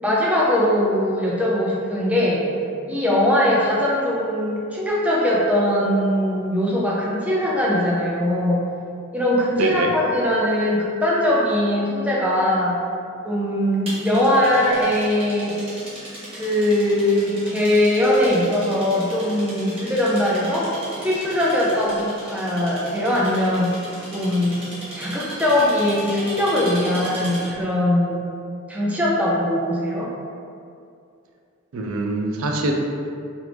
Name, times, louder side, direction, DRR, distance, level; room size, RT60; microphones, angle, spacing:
voice 1, 0.0-2.5 2.9-8.6 9.1-12.8 13.2-15.6 16.3-20.7 21.0-23.8 24.1-24.6 24.9-28.2 28.7-30.1, left 1 dB, 5° right, -5 dB, 0.5 m, -21 dB
voice 2, 9.6-9.9 31.7-32.7, right 2 dB, 85° right, 1 dB, 0.4 m, -24 dB
sound 1, 13.9-27.6, right 1 dB, 30° right, 0.9 m, -37 dB
3.0 x 2.5 x 3.3 m, 2.4 s
head